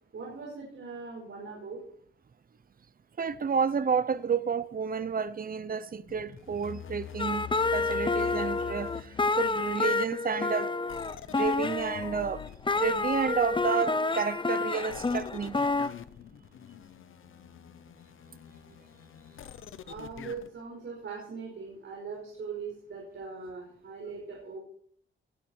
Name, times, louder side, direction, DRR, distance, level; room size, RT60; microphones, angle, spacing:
voice 1, 0.1-1.8 19.8-24.6, right 5 dB, 75° right, 5.1 m, -40 dB
voice 2, 3.2-10.8 11.3-12.4 12.8-15.6, right 6 dB, 45° right, 0.8 m, -31 dB
sound 1, 6.1-9.8 10.9-14.0 14.9-20.5, left 9 dB, 85° left, 0.8 m, -46 dB
sound 2, 7.2-15.9, left 3 dB, 25° left, 0.8 m, -29 dB
19.0 x 12.0 x 4.5 m
cardioid pair, 75°, 20 cm